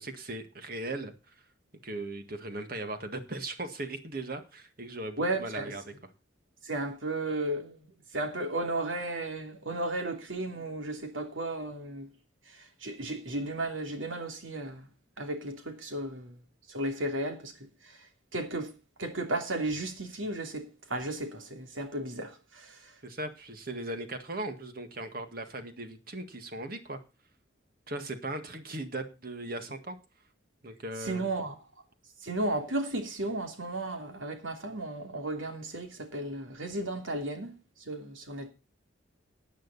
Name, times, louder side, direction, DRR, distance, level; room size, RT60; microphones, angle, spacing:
voice 1, 0.0-1.3 1.8-5.8 23.0-27.0 27.9-30.0 30.6-31.2, right 2 dB, 45° right, 1.8 m, -38 dB
voice 2, 5.2-5.7 6.6-12.1 12.5-14.9 15.2-16.4 16.7-17.5 17.8-18.0 18.3-18.7 19.0-22.9 31.0-31.5 32.2-37.5 37.8-38.5, right 2 dB, 85° right, 2.9 m, -34 dB
15.5 x 9.2 x 4.1 m
head